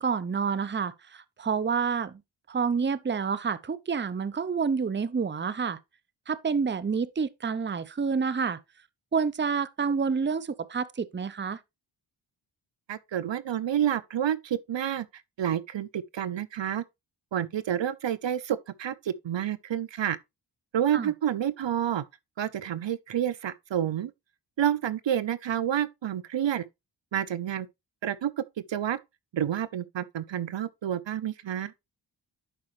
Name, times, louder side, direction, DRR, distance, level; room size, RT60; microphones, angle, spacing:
voice 1, 0.0-2.2 2.5-5.8 6.3-8.6 9.1-11.6 20.9-21.1, right 5 dB, 25° right, 0.6 m, -28 dB
voice 2, 12.9-15.1 15.4-16.8 17.3-20.2 20.7-22.0 22.4-24.1 24.6-26.6 27.1-27.7 28.0-28.3 28.7-29.0 29.3-31.7, right 10 dB, 70° right, 0.7 m, -29 dB
11.0 x 4.8 x 3.1 m
cardioid pair, 60°, 47 cm